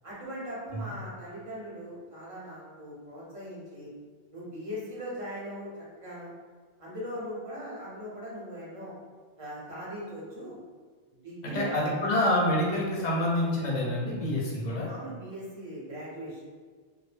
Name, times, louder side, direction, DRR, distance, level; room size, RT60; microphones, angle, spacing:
voice 1, 0.0-3.9 4.3-6.3 6.8-8.9 9.4-10.6 11.2-11.9 14.8-16.4, equal, 35° right, -7 dB, 0.7 m, -40 dB
voice 2, 11.4-14.9, left 1 dB, 50° left, -4 dB, 0.6 m, -27 dB
2.1 x 2.0 x 3.2 m, 1.5 s
omnidirectional pair, 1.1 m